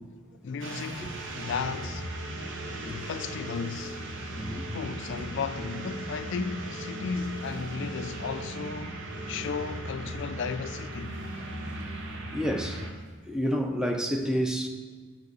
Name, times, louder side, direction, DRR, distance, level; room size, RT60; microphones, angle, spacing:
voice 1, 0.4-2.1 2.8-4.0 4.7-9.0 9.3-11.2, left 5 dB, 55° left, 0.3 m, -35 dB
sound 1, 0.6-12.9, right 1 dB, 60° right, 0.8 m, -37 dB
voice 2, 12.3-12.8 13.2-14.7, equal, 5° right, 0.5 m, -29 dB
7.4 x 5.4 x 4.0 m
head